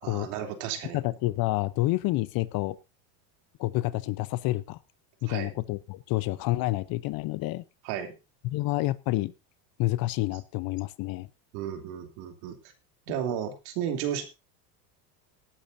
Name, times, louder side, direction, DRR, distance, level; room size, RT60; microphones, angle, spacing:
voice 1, 0.0-1.0 5.3-5.5 7.8-8.1 11.5-12.6 13.1-14.2, right 9 dB, 70° right, 5 dB, 3.4 m, -33 dB
voice 2, 0.9-2.8 3.6-4.8 5.2-7.6 8.4-9.3 9.8-11.3, left 18 dB, 45° left, 17 dB, 0.8 m, -28 dB
18.0 x 11.5 x 2.7 m, 0.27 s
supercardioid pair, 135°, 49 cm